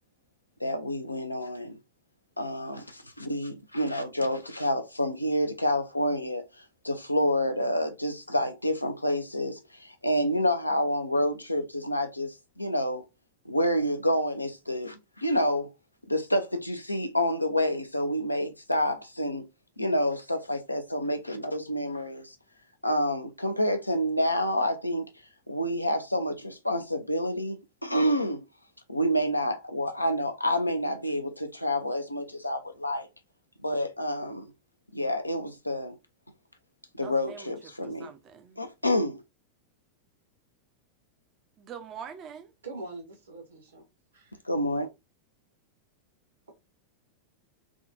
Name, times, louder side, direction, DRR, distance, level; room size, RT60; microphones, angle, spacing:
voice 1, 0.6-1.8 2.4-6.4 6.8-13.0 13.5-15.7 16.1-19.5 19.8-22.3 22.8-25.1 25.5-28.4 28.9-33.1 33.6-34.5 34.9-36.0 37.0-38.1 38.6-39.2 44.5-44.9, equal, 85° left, 0.4 m, -28 dB
voice 2, 37.0-38.6 41.6-42.5, right 7 dB, 30° right, 0.5 m, -44 dB
voice 3, 42.6-43.8 44.1-44.4, right 3 dB, 70° right, 1.2 m, -42 dB
3.6 x 2.2 x 2.5 m
figure-of-eight pair, 90°, 0 cm